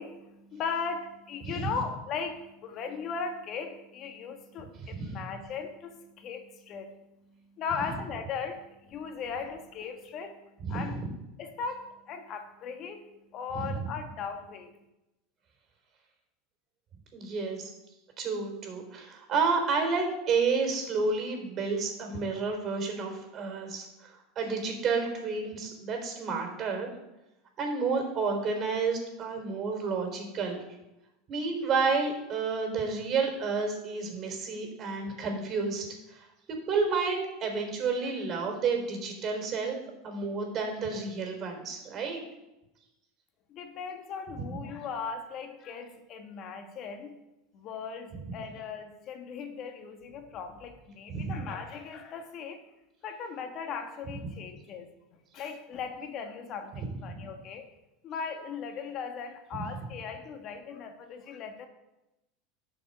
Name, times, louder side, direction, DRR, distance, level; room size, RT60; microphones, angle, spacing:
voice 1, 0.0-11.0 11.4-14.7 43.5-47.2 47.5-52.6 53.0-54.9 55.3-57.7 58.0-61.7, left 5 dB, 45° left, 6 dB, 1.4 m, -38 dB
voice 2, 1.4-1.7 4.8-5.2 10.7-10.8 13.5-13.8 17.1-17.7 18.2-26.9 27.6-30.6 31.3-36.3 36.7-39.8 40.0-42.2 51.1-51.3 57.1-57.2, right 4 dB, 40° right, 3 dB, 3.8 m, -30 dB
11.5 x 6.5 x 5.5 m, 0.96 s
hypercardioid pair, 85°, 0 cm